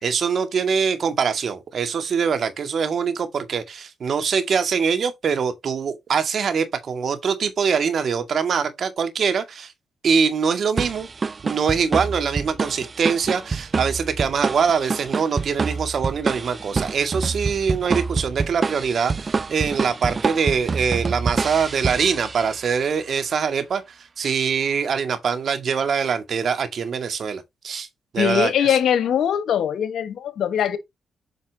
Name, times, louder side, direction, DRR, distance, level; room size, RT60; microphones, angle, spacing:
voice 1, 0.0-9.7 10.0-11.1 11.4-23.8 24.2-27.9 28.1-28.7, right 6 dB, 60° right, 1.9 m, -23 dB
sound 1, 10.8-22.7, right 4 dB, 40° right, 0.4 m, -27 dB
voice 2, 28.2-30.8, left 9 dB, 75° left, 1.5 m, -21 dB
8.4 x 5.5 x 2.9 m
supercardioid pair, 55°, 0 cm